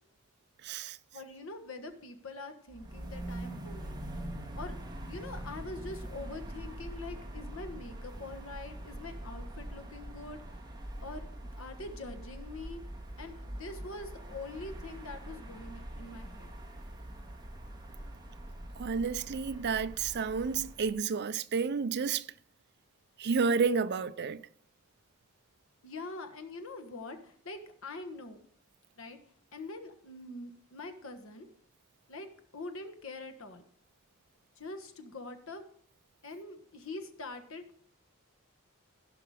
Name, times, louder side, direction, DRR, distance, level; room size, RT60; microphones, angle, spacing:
voice 1, 0.6-1.0 18.8-22.2 23.2-24.4, right 5 dB, 50° right, 0.5 m, -30 dB
voice 2, 1.1-4.0 4.5-10.7 11.0-12.8 13.2-16.5 25.8-28.4 28.9-29.2 29.5-31.5 32.1-33.6 34.6-35.6 36.2-37.8, left 2 dB, 65° left, 1.4 m, -44 dB
sound 1, 2.7-21.0, right 1 dB, 20° right, 1.8 m, -43 dB
16.0 x 6.0 x 4.9 m
head